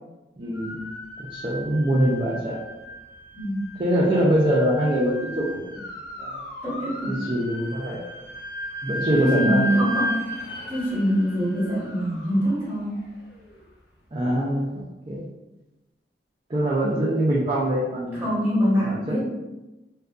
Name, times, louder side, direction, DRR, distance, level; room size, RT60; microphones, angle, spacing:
voice 1, 0.4-2.6 3.8-5.8 6.2-6.4 7.1-8.0 8.8-9.8 14.1-15.2 16.5-18.3 18.8-19.3, right 1 dB, 30° right, -8 dB, 0.4 m, -24 dB
sound 1, 0.5-13.6, equal, 60° left, 0.5 m, -35 dB
voice 2, 3.3-3.7 6.6-7.1 9.1-10.2 10.7-12.9 18.2-19.3, equal, 10° right, -9 dB, 1.2 m, -24 dB
2.6 x 2.4 x 2.4 m, 1.0 s
head